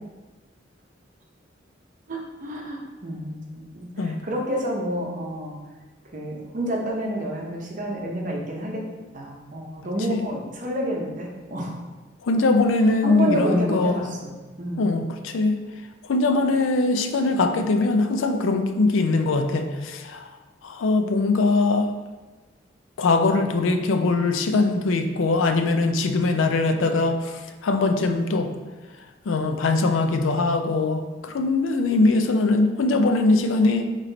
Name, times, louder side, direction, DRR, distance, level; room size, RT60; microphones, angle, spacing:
voice 1, 2.1-5.6 6.1-8.8 9.1-11.8 13.0-14.9, right 1 dB, 40° right, -1 dB, 0.7 m, -29 dB
voice 2, 12.2-14.1 14.8-15.6 16.1-20.3 20.6-21.9 23.0-28.5 29.3-33.9, left 3 dB, 85° left, 6 dB, 0.4 m, -21 dB
4.1 x 3.1 x 3.9 m, 1.3 s
head